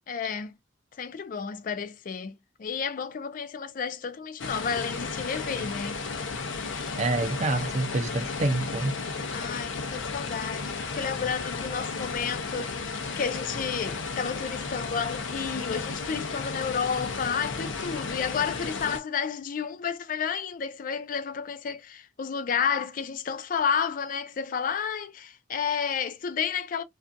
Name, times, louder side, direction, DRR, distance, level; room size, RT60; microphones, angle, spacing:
voice 1, 0.1-0.5 1.0-6.0 6.5-7.0 9.3-26.8, left 6 dB, 45° left, 0.4 m, -31 dB
sound 1, 4.4-19.0, left 4 dB, 85° left, 0.6 m, -34 dB
voice 2, 7.0-9.0, right 2 dB, 35° right, 0.5 m, -27 dB
2.5 x 2.3 x 2.5 m
head